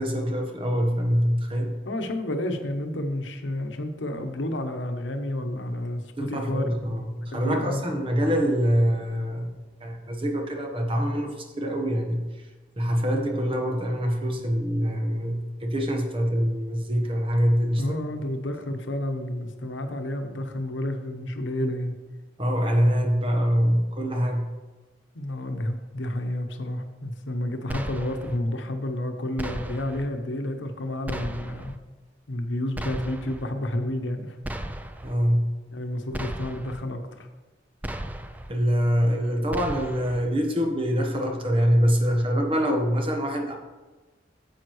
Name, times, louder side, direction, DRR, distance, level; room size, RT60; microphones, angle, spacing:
voice 1, 0.0-1.7 6.2-9.5 9.8-11.3 11.6-12.3 12.8-18.0 22.4-24.5 35.0-35.4 38.5-43.5, equal, 30° right, 3 dB, 1.1 m, -24 dB
voice 2, 1.9-7.0 7.3-7.9 17.7-21.9 25.1-31.7 32.3-34.4 35.7-37.3, left 1 dB, 80° left, 6 dB, 0.9 m, -30 dB
sound 1, 27.7-28.4 29.4-30.1 31.1-31.8 32.7-33.4 34.4-35.1 36.1-36.8 37.8-38.5 39.5-40.2, right 1 dB, 10° right, 0.3 m, -35 dB
9.3 x 7.2 x 3.1 m, 1.3 s
head